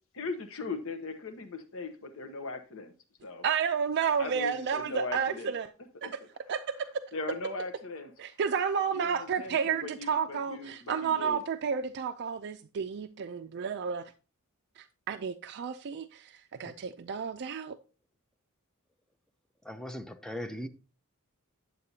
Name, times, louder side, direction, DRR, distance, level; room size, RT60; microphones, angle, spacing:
voice 1, 0.1-2.9 3.2-3.4 4.2-5.5 6.0-6.1 7.1-8.1 8.9-11.4, left 3 dB, 65° left, 0.9 m, -39 dB
voice 2, 3.4-5.7 6.0-6.2 6.5-7.0 8.2-14.1 14.8-17.8, right 6 dB, 50° right, 0.4 m, -31 dB
voice 3, 19.6-20.7, equal, 5° left, 0.6 m, -39 dB
9.6 x 7.5 x 2.8 m
head